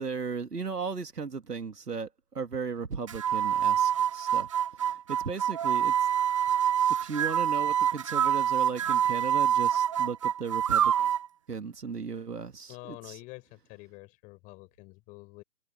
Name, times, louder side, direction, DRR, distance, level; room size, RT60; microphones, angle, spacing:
voice 1, 0.0-2.1 2.3-4.5 4.8-5.9 7.0-11.1 11.5-13.2, right 5 dB, 75° right, 2.7 m, -36 dB
sound 1, 3.1-11.3, right 9 dB, 20° right, 0.9 m, -26 dB
voice 2, 12.7-15.4, left 23 dB, 15° left, 4.6 m, -47 dB
figure-of-eight pair, 150°, 47 cm